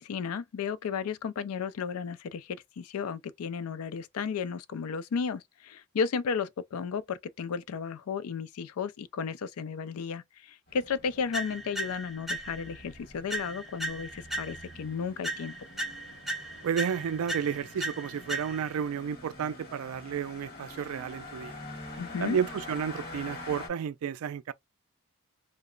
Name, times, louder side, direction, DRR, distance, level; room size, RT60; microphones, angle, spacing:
voice 1, 0.0-15.5 22.0-22.4, left 6 dB, 80° left, 0.4 m, -34 dB
sound 1, 10.7-23.7, left 2 dB, 45° left, 0.9 m, -46 dB
sound 2, 11.3-12.8 13.3-14.8 15.2-18.8, right 1 dB, ahead, 0.4 m, -37 dB
voice 2, 16.6-21.5 22.2-24.5, right 7 dB, 75° right, 0.3 m, -32 dB
2.9 x 2.0 x 2.4 m
head